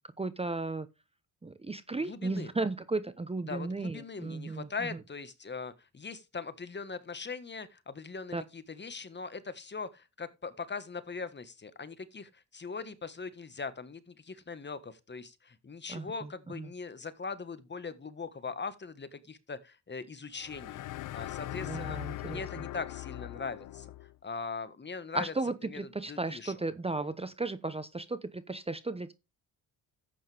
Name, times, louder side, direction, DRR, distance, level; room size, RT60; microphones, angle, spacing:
voice 1, 0.2-0.9 1.4-4.9 8.3-8.4 15.9-16.7 21.6-22.7 25.1-29.1, right 3 dB, 15° right, 0.9 m, -35 dB
voice 2, 2.0-2.5 3.5-20.8 21.1-23.9 24.2-25.3 25.6-25.8 26.1-26.5, left 4 dB, 30° left, 1.5 m, -41 dB
sound 1, 20.4-24.1, left 15 dB, 60° left, 0.5 m, -40 dB
11.5 x 8.5 x 3.5 m
cardioid pair, 75°, 37 cm